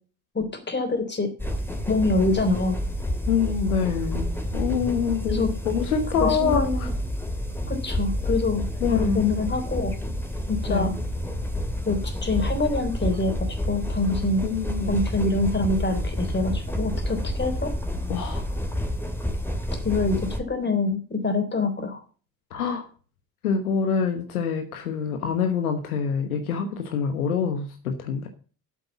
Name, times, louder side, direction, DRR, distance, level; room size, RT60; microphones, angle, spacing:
voice 1, 0.3-1.3 1.9-2.8 5.3-5.5 6.2-6.9 7.7-8.6 8.9-10.0 10.5-10.9 11.9-14.4 14.9-17.7 19.8-22.0, left 3 dB, 25° left, 6 dB, 3.6 m, -25 dB
sound 1, 1.4-20.4, equal, 5° left, 2.5 m, -29 dB
voice 2, 3.3-6.9 8.8-9.2 10.7-10.9 14.4-15.0 18.1-18.4 22.5-22.9 23.4-28.3, left 6 dB, 80° left, 6 dB, 1.2 m, -26 dB
9.0 x 7.9 x 7.2 m, 0.39 s
figure-of-eight pair, 50°, 43 cm